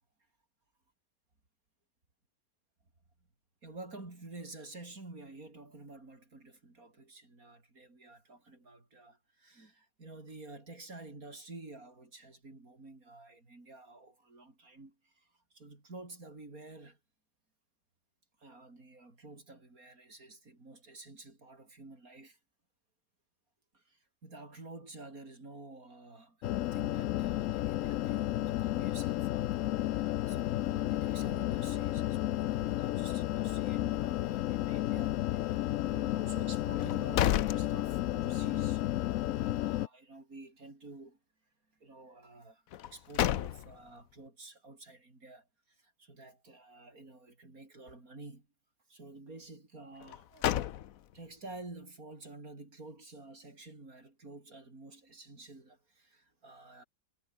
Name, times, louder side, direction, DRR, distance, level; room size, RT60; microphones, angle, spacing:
voice 1, 3.6-17.0 18.4-22.4 23.7-38.9 39.3-41.2 41.7-48.5 48.9-50.6 51.1-56.8, right 2 dB, 50° right, 5.4 m, -50 dB
sound 1, 26.4-39.9, left 14 dB, 80° left, 0.7 m, -32 dB
sound 2, 36.8-38.4 38.8-38.9 42.7-44.0 50.0-51.3, left 11 dB, 60° left, 1.0 m, -32 dB
omnidirectional pair, 1.9 m